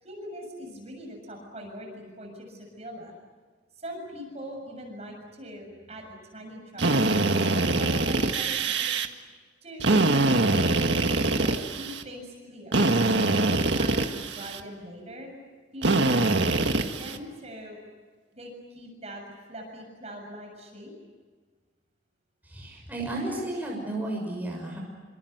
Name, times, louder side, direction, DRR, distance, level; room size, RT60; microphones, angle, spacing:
voice 1, 0.0-3.1 3.8-9.0 9.6-10.5 11.3-12.8 13.3-15.3 15.7-17.8 18.3-19.2 19.5-20.9, equal, 35° right, 2 dB, 7.1 m, -42 dB
Drill, 6.8-9.1 9.8-12.0 12.7-14.6 15.8-17.2, right 2 dB, 70° right, 1.7 m, -24 dB
voice 2, 22.5-24.8, right 1 dB, 10° right, -2 dB, 6.3 m, -33 dB
27.0 x 26.5 x 8.1 m, 1.4 s
head